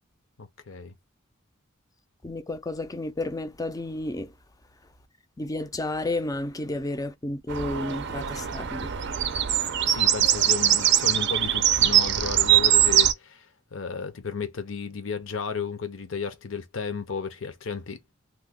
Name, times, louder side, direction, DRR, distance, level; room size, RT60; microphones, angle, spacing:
voice 1, 0.4-0.9 9.9-13.5 13.7-18.0, left 5 dB, 65° left, 0.7 m, -33 dB
voice 2, 2.2-4.3 5.4-8.9, left 2 dB, 15° left, 0.4 m, -31 dB
sound 1, 7.5-13.1, right 11 dB, 55° right, 0.5 m, -22 dB
3.0 x 2.2 x 3.5 m
head